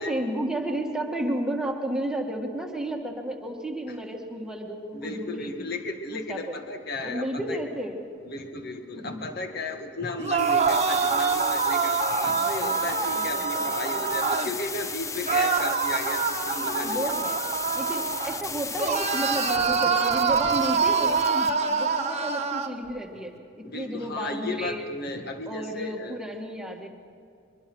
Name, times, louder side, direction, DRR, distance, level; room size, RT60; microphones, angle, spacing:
voice 1, 0.0-5.7 6.1-6.6 7.0-8.1 9.0-9.3 12.2-12.9 13.2-14.1 16.8-17.4 17.7-24.9 25.5-26.9, right 1 dB, 5° right, 1 dB, 1.7 m, -32 dB
voice 2, 4.9-7.6 8.2-17.5 23.6-26.2, left 2 dB, 55° left, 5 dB, 1.8 m, -35 dB
sound 1, 10.2-14.5 15.3-18.4 18.8-22.7, right 5 dB, 35° right, 1.2 m, -25 dB
sound 2, 10.4-21.5, left 4 dB, 15° left, 0.6 m, -36 dB
23.5 x 23.5 x 6.2 m, 2.4 s
head